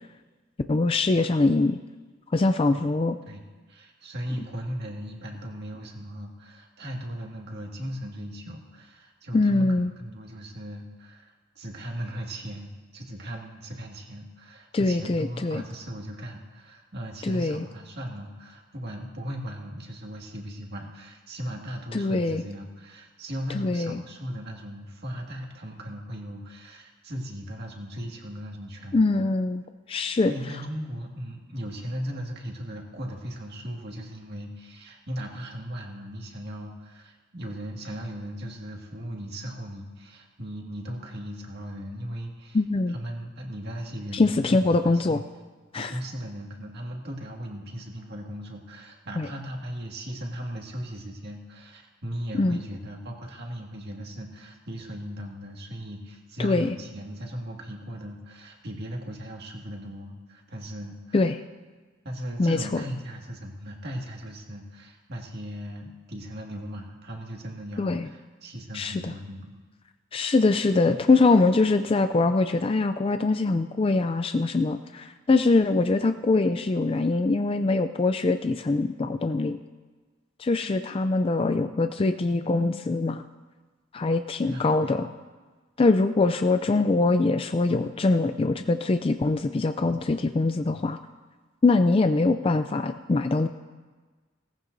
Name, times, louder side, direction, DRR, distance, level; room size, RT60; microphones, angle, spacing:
voice 1, 0.7-1.8 2.3-3.2 9.3-9.9 14.7-15.6 17.2-17.7 21.9-22.4 23.5-24.0 28.9-29.6 29.9-30.3 42.5-43.0 44.1-45.2 45.7-45.9 49.2-49.3 52.4-52.6 56.4-56.7 61.1-61.4 62.4-62.8 67.8-68.1 68.7-69.1 70.1-79.6 80.4-83.2 83.9-85.1 85.8-91.0 91.6-93.5, left 3 dB, 30° left, 9 dB, 0.4 m, -23 dB
voice 2, 3.3-9.7 10.0-29.2 30.3-42.6 42.9-45.2 45.8-61.2 62.0-69.6 84.4-85.0, equal, 55° right, 0 dB, 2.0 m, -37 dB
18.5 x 14.5 x 2.7 m, 1.4 s
head